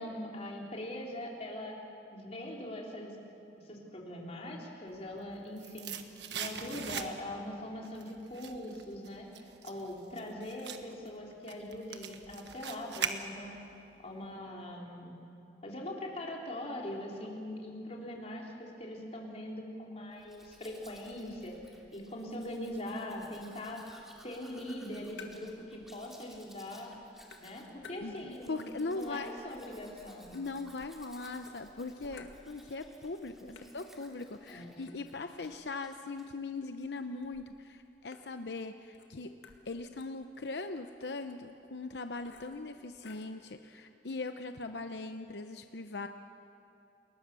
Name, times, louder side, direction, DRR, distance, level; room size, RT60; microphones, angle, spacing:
voice 1, 0.0-1.8 2.1-3.2 3.7-5.9 6.3-13.5 14.0-15.1 15.6-21.5 21.9-23.8 24.2-26.9 27.4-30.3 33.4-33.6 34.5-34.7, left 1 dB, 40° left, -2 dB, 3.8 m, -42 dB
sound 1, 5.1-7.5 7.8-13.7 14.0-14.1, right 7 dB, 80° right, 1.4 m, -41 dB
Domestic sounds home sounds, 20.1-35.6 35.8-36.3, equal, ahead, 2.8 m, -59 dB
sound 2, 24.7-25.7 26.0-26.7 26.9-28.5 28.9-31.1 31.4-32.9 33.2-33.3 33.6-43.4, left 5 dB, 85° left, 2.2 m, -58 dB
voice 2, 28.0-29.3 30.3-39.3 39.6-46.1, left 3 dB, 70° left, 7 dB, 0.8 m, -40 dB
29.5 x 21.0 x 6.9 m, 2.9 s
head